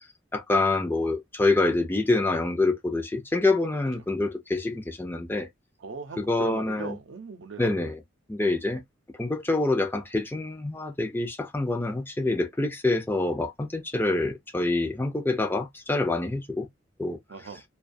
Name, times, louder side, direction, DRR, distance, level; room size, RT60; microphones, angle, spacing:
voice 1, 0.3-5.5 6.2-7.0 7.6-8.0 8.3-8.8 9.2-16.7 17.0-17.2, left 2 dB, 10° left, 0.4 m, -26 dB
voice 2, 5.8-7.9 17.3-17.6, right 4 dB, 75° right, 0.6 m, -39 dB
2.3 x 2.3 x 2.5 m
head